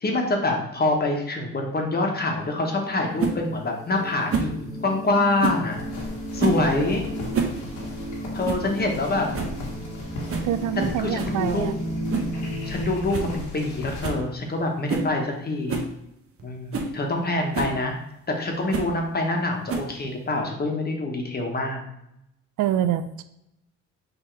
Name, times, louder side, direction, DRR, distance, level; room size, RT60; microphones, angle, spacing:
voice 1, 0.0-5.8 6.3-7.0 8.3-9.3 10.8-11.7 12.6-15.8 16.4-17.9 18.4-21.8, left 2 dB, 30° left, 2 dB, 1.1 m, -25 dB
sound 1, 1.8-12.8, equal, 10° right, 1.2 m, -35 dB
sound 2, 3.2-3.4 4.3-4.6 5.4-5.7 6.4-6.7 7.2-7.6 7.9-8.0 8.4-8.7 9.0-9.1 9.3-9.6 10.3-10.5 11.2-11.4 12.1-12.4 12.7-12.8 13.1-13.3 13.6-13.7 14.0-14.2 14.9-15.1 15.7-15.9 16.4-16.5 16.7-16.9 17.5-17.8 18.7-18.9 19.7-20.1, right 5 dB, 50° right, 0.8 m, -27 dB
sound 3, 5.7-14.1, left 2 dB, 80° left, 1.3 m, -37 dB
voice 2, 10.4-11.7 22.6-23.2, right 10 dB, 80° right, 12 dB, 0.4 m, -25 dB
5.7 x 2.8 x 3.2 m, 0.82 s
cardioid pair, 90°, 30 cm